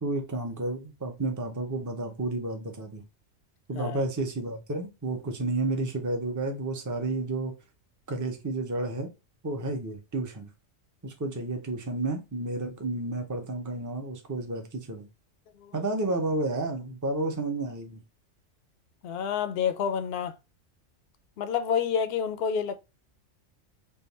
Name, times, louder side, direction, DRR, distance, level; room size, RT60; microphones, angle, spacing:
voice 1, 0.0-3.0 3.7-7.6 8.1-9.1 9.4-10.5 11.0-15.1 15.7-18.0, right 2 dB, 20° right, 0.6 m, -31 dB
voice 2, 19.0-20.3 21.4-22.8, left 7 dB, 60° left, 0.7 m, -28 dB
3.5 x 2.5 x 4.0 m
omnidirectional pair, 1.3 m